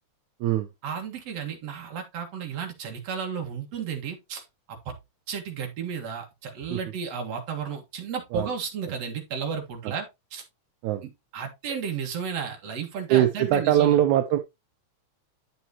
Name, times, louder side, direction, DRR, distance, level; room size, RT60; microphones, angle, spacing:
voice 1, 0.8-4.9 5.3-10.4 11.0-14.0, right 6 dB, 60° right, 2.7 m, -33 dB
voice 2, 13.1-14.4, right 12 dB, 80° right, 2.1 m, -22 dB
9.7 x 6.1 x 2.9 m
omnidirectional pair, 3.4 m